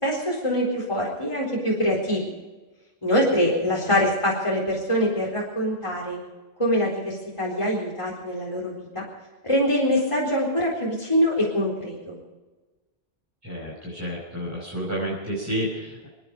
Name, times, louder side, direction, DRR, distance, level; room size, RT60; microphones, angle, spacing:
voice 1, 0.0-2.3 3.0-6.2 6.6-9.0 9.4-12.2, equal, 30° left, -5 dB, 4.2 m, -24 dB
voice 2, 13.4-16.1, equal, 15° right, -6 dB, 5.2 m, -30 dB
28.5 x 10.0 x 5.0 m, 1.2 s
omnidirectional pair, 1.1 m